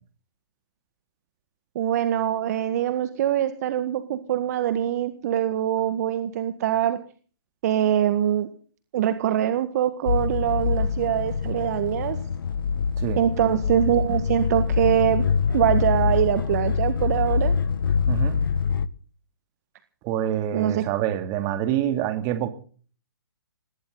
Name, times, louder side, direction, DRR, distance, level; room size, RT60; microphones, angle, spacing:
voice 1, 1.8-7.0 7.6-8.5 8.9-12.2 13.2-15.2 15.5-17.6 20.5-20.8, right 11 dB, 45° right, 1.8 m, -23 dB
sound 1, 10.1-18.9, left 5 dB, 65° left, 1.1 m, -24 dB
voice 2, 18.1-18.4 20.0-22.5, right 11 dB, 30° right, 2.9 m, -26 dB
20.5 x 17.5 x 4.1 m
hypercardioid pair, 135°, 12 cm